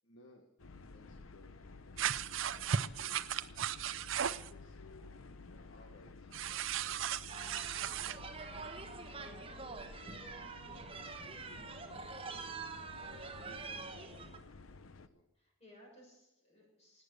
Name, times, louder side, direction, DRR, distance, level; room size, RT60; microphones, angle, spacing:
voice 1, 0.0-0.5 0.9-3.5 4.2-9.4 10.0-11.5 11.9-15.2, left 1 dB, 60° left, 2 dB, 1.5 m, -61 dB
sound 1, 0.6-15.1, left 3 dB, 85° left, 0.8 m, -53 dB
sound 2, 2.0-4.5 6.3-8.2, right 8 dB, 70° right, 0.5 m, -36 dB
sound 3, 7.3-14.4, right 4 dB, 25° right, 1.2 m, -46 dB
voice 2, 9.1-9.6 15.3-17.0, left 1 dB, 30° left, -2 dB, 6.8 m, -58 dB
17.5 x 9.6 x 6.6 m, 0.92 s
head